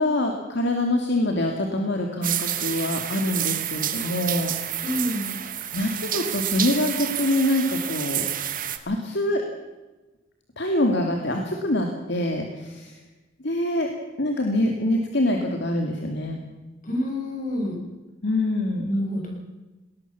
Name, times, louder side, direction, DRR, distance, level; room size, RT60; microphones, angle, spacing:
voice 1, 0.0-5.0 5.7-8.3 8.9-9.4 10.6-13.0 13.4-13.9 14.2-16.4 18.2-18.9, left 1 dB, 60° left, 3 dB, 2.5 m, -25 dB
sound 1, 2.2-8.8, right 10 dB, 45° right, 1.7 m, -29 dB
voice 2, 4.8-5.3 16.8-17.7 18.8-19.6, left 1 dB, 45° left, 1 dB, 6.6 m, -28 dB
20.5 x 19.0 x 7.0 m, 1.1 s
head